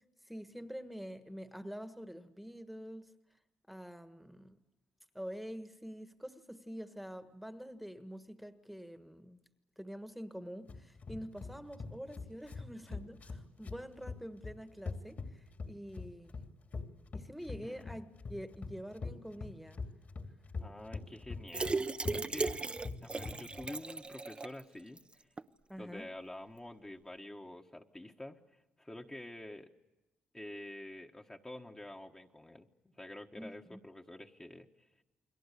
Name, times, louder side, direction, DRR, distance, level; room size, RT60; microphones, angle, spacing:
voice 1, 0.3-3.1 3.7-4.6 5.1-9.4 9.8-16.3 17.1-18.0 18.3-19.8 25.7-26.1 33.4-33.8, equal, ahead, 1.5 m, -46 dB
sound 1, 10.7-23.7, left 4 dB, 45° left, 3.0 m, -43 dB
voice 2, 17.5-18.0 20.6-22.6 23.0-25.3 25.8-29.7 30.3-32.7 32.9-34.9, left 1 dB, 15° left, 1.5 m, -48 dB
sound 2, 21.5-24.6 25.0-25.1 25.4-25.5, right 3 dB, 25° right, 0.9 m, -36 dB
29.5 x 22.0 x 8.4 m
cardioid pair, 75°, 4 cm